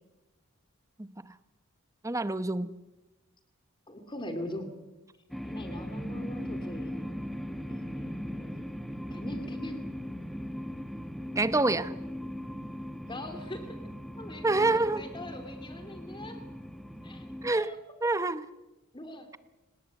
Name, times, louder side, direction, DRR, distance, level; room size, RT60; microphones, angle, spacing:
voice 1, 1.0-1.3 2.0-2.7 11.4-11.9 14.4-15.1 17.4-17.7 18.0-18.5, right 2 dB, 15° right, 0.8 m, -27 dB
voice 2, 3.9-4.7 5.5-8.7 9.1-9.8 13.1-13.8 14.2-16.4 17.0-17.8 18.9-19.3, left 1 dB, 20° left, 2.5 m, -42 dB
sound 1, 5.3-17.5, equal, ahead, 1.1 m, -39 dB
29.5 x 19.5 x 8.1 m
head